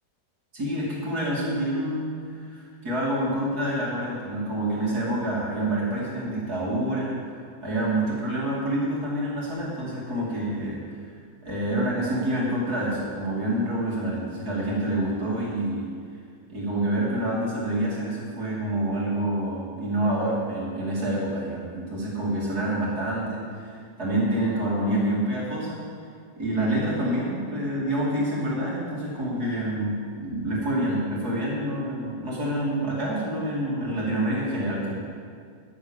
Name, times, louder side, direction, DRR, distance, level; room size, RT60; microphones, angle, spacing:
voice 1, 0.5-7.3 7.6-11.1 11.4-15.9 16.5-25.8 26.4-34.9, right 1 dB, 60° right, -5 dB, 3.1 m, -27 dB
10.0 x 9.9 x 7.3 m, 2.2 s
omnidirectional pair, 1.9 m